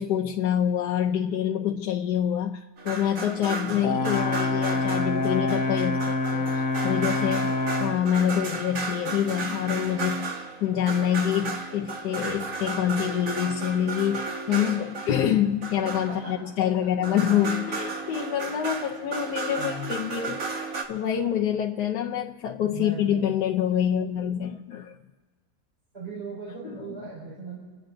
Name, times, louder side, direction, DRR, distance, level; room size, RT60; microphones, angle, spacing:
voice 1, 0.0-10.3 10.6-25.0 26.6-26.9, left 9 dB, 85° left, 0 dB, 1.3 m, -26 dB
sound 1, 2.8-16.6 17.0-20.8, right 4 dB, 55° right, 1.8 m, -34 dB
Brass instrument, 3.8-8.1, left 3 dB, 60° left, 1.3 m, -26 dB
voice 2, 22.6-23.2 23.7-24.5 25.9-27.6, right 4 dB, 35° right, -7 dB, 4.9 m, -38 dB
28.0 x 10.5 x 3.8 m, 1.5 s
omnidirectional pair, 1.7 m